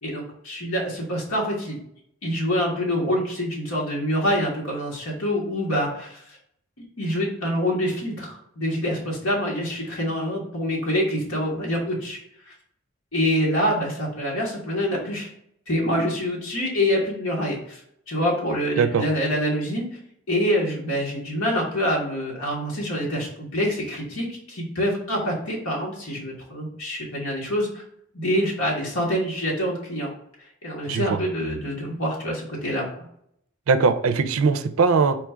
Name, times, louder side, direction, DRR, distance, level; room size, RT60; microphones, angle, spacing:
voice 1, 0.0-1.8 2.2-6.4 6.8-12.2 12.5-12.6 13.1-15.3 15.7-17.8 18.1-19.8 20.3-27.8 28.1-30.1 30.6-33.1, equal, 80° left, -3 dB, 1.4 m, -26 dB
voice 2, 30.9-31.2 33.7-35.2, right 5 dB, 75° right, 9 dB, 0.4 m, -20 dB
4.4 x 2.4 x 4.3 m, 0.72 s
head